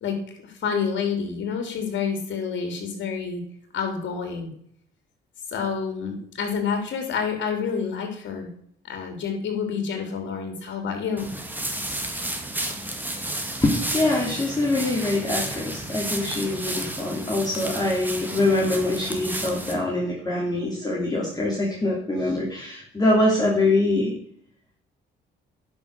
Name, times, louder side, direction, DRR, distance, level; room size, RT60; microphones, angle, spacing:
voice 1, 0.0-3.4 3.7-4.5 5.5-8.5 8.9-11.3, left 6 dB, 70° left, 4 dB, 2.8 m, -28 dB
sound 1, 11.2-19.7, right 1 dB, 10° right, 1.9 m, -32 dB
voice 2, 13.6-24.1, left 2 dB, 20° left, -3 dB, 3.0 m, -24 dB
10.5 x 5.9 x 6.4 m, 0.64 s
cardioid pair, 90°, 20 cm